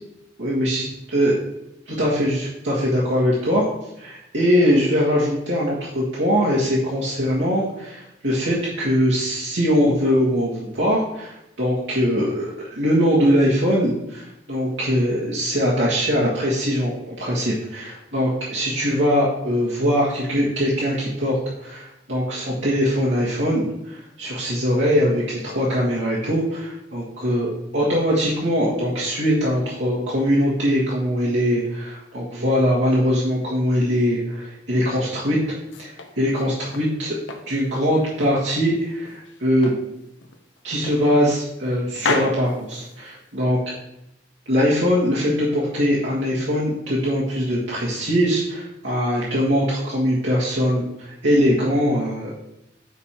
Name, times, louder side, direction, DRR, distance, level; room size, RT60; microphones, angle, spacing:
voice 1, 0.4-1.3 1.9-3.7 4.0-35.4 35.8-37.2 37.5-39.7 40.6-43.6 44.4-52.3, equal, 75° right, -7 dB, 1.7 m, -21 dB
sound 1, 35.5-36.9 37.3-38.7 39.0-39.9 40.2-40.4 40.8-41.7 41.9-43.4, left 3 dB, 90° left, 0.9 m, -31 dB
9.2 x 3.6 x 4.4 m, 0.86 s
head